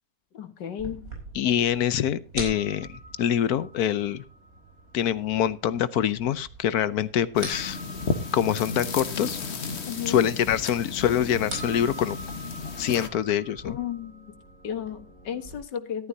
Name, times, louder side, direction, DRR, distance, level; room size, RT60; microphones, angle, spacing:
voice 1, 0.3-1.1 9.9-10.2 13.6-14.3 14.6-16.1, left 9 dB, 80° left, 8 dB, 2.0 m, -34 dB
sound 1, 0.8-15.6, right 2 dB, 55° right, 5.5 m, -43 dB
voice 2, 1.3-4.2 4.9-7.8 8.3-9.4 10.1-12.2 12.8-13.8, left 10 dB, 65° left, 16 dB, 1.2 m, -25 dB
sound 2, 7.4-13.1, left 4 dB, 40° left, 1.4 m, -33 dB
14.5 x 12.0 x 2.7 m, 0.32 s
omnidirectional pair, 1.8 m